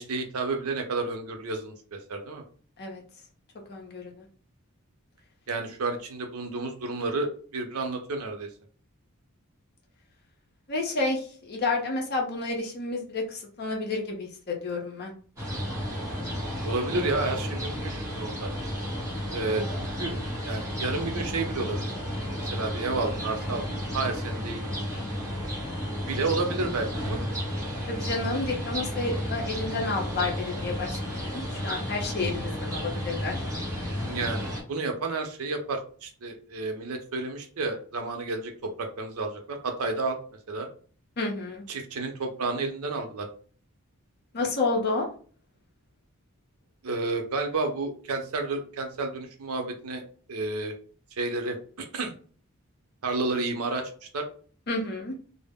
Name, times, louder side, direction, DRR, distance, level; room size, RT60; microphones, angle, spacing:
voice 1, 0.0-2.4 5.5-8.5 16.6-18.5 19.3-20.1 20.4-21.9 22.4-24.6 26.1-27.3 34.0-40.2 40.5-40.7 41.7-43.3 46.8-50.0 50.3-50.7 51.2-52.1 53.0-54.3, right 3 dB, 80° right, 4 dB, 0.6 m, -31 dB
voice 2, 3.7-4.2 10.7-15.1 27.9-33.4 41.2-41.7 44.3-45.1 54.7-55.1, left 3 dB, 45° left, 1 dB, 0.6 m, -30 dB
sound 1, 15.4-34.6, equal, 15° right, 1.0 m, -32 dB
2.1 x 2.0 x 3.4 m, 0.44 s
head